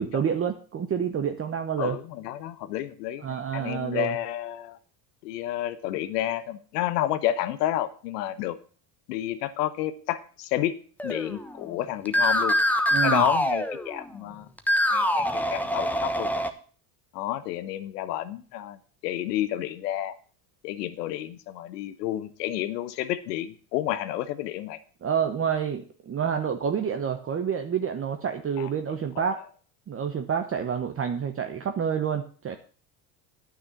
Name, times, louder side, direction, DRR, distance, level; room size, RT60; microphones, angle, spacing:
voice 1, 0.0-2.0 3.2-4.1 12.9-13.2 25.0-29.4 29.9-32.6, right 7 dB, 30° right, 6 dB, 1.0 m, -28 dB
voice 2, 1.8-4.8 5.2-8.6 9.1-10.7 11.0-12.6 13.0-14.5 14.9-16.3 17.1-20.2 20.6-24.8 28.6-28.7 29.2-29.3, left 13 dB, 85° left, 13 dB, 1.0 m, -30 dB
sound 1, 11.0-11.7 12.1-14.2 14.6-16.5, left 1 dB, 5° left, 1.0 m, -25 dB
9.7 x 6.4 x 6.9 m, 0.41 s
supercardioid pair, 100°, 47 cm